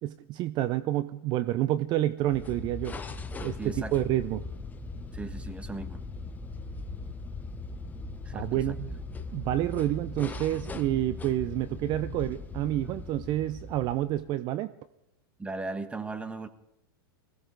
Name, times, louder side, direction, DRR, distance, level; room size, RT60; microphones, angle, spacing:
voice 1, 0.0-2.9 3.4-4.4 8.3-8.9 9.3-14.7, right 14 dB, 40° right, 15 dB, 0.5 m, -29 dB
sound 1, 2.2-14.4, left 3 dB, 15° left, 1.0 m, -39 dB
voice 2, 3.6-4.0 5.1-6.0 8.2-8.5 15.4-16.5, right 3 dB, 10° right, 9 dB, 1.3 m, -37 dB
20.5 x 16.0 x 3.9 m, 0.85 s
hypercardioid pair, 120°, 12 cm